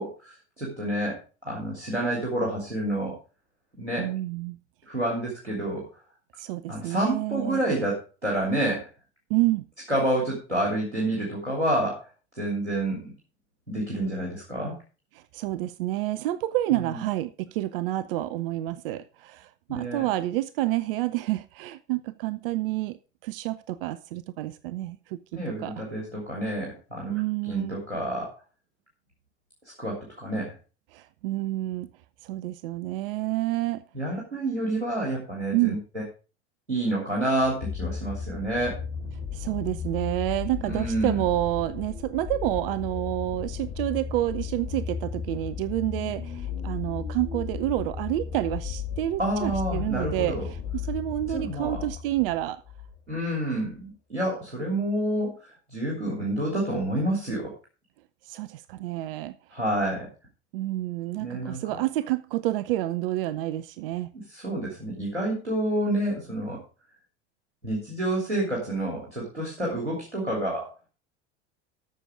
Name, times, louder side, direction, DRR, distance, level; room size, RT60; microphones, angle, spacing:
voice 1, 0.0-3.1 3.7-4.1 4.9-5.8 6.7-8.8 9.9-12.0 12.3-13.1 13.7-14.7 16.7-17.0 19.7-20.1 25.3-27.1 27.5-28.3 29.8-30.5 33.9-36.0 36.7-38.8 40.6-41.2 49.2-50.4 51.3-51.8 53.1-55.3 55.7-57.5 59.5-60.1 61.2-61.8 64.3-66.6 67.6-70.7, right 1 dB, 90° right, 3.3 m, -28 dB
voice 2, 4.0-4.6 6.4-7.6 9.3-9.7 15.1-25.8 27.1-27.8 30.9-31.9 32.2-33.8 35.5-35.8 39.3-52.6 58.2-59.6 60.5-64.1, right 15 dB, 55° right, 0.6 m, -29 dB
sound 1, 37.4-53.0 53.8-53.9, left 6 dB, 55° left, 2.1 m, -35 dB
13.0 x 6.9 x 4.9 m
figure-of-eight pair, 70°, 34 cm